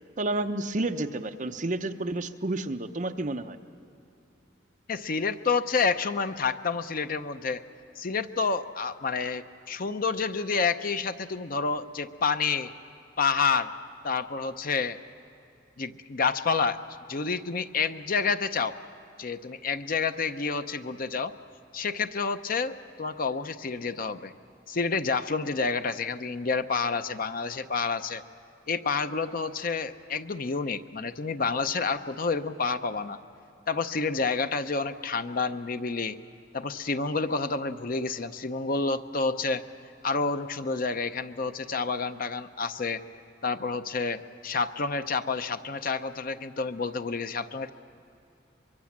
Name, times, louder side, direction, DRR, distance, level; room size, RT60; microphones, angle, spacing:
voice 1, 0.2-3.6, right 2 dB, 40° right, 7 dB, 0.8 m, -30 dB
voice 2, 4.9-7.6 8.0-12.7 13.2-13.7 14.0-15.0 15.8-16.8 17.1-18.8 19.2-21.3 21.7-24.3 24.7-28.2 28.7-33.2 33.7-36.2 36.5-39.6 40.0-43.0 43.4-47.7, left 4 dB, 50° left, 10 dB, 0.7 m, -29 dB
24.0 x 23.0 x 7.4 m, 2.7 s
head